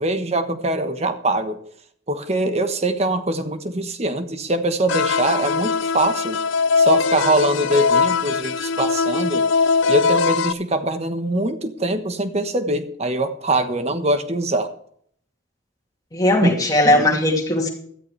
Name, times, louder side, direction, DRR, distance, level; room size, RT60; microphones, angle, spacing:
voice 1, 0.0-1.6 2.1-6.4 6.8-9.5 9.9-14.7 16.4-16.5 16.8-17.1, right 1 dB, 35° right, 8 dB, 1.2 m, -23 dB
sound 1, 4.9-10.5, left 5 dB, 85° left, 0.6 m, -20 dB
voice 2, 16.1-17.7, left 1 dB, 20° left, -1 dB, 2.7 m, -18 dB
15.5 x 13.5 x 3.3 m, 0.63 s
head